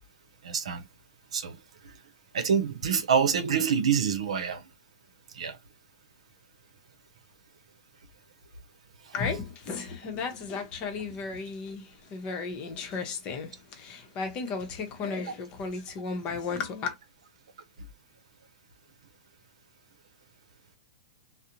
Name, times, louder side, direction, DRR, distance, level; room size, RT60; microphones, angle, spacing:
voice 1, 0.4-0.9 1.3-1.9 2.3-4.6 5.3-5.6 9.0-9.1, right 7 dB, 80° right, 0.6 m, -27 dB
voice 2, 9.1-16.9, left 4 dB, 30° left, 0.8 m, -34 dB
2.4 x 2.1 x 2.8 m
hypercardioid pair, 140°, 3 cm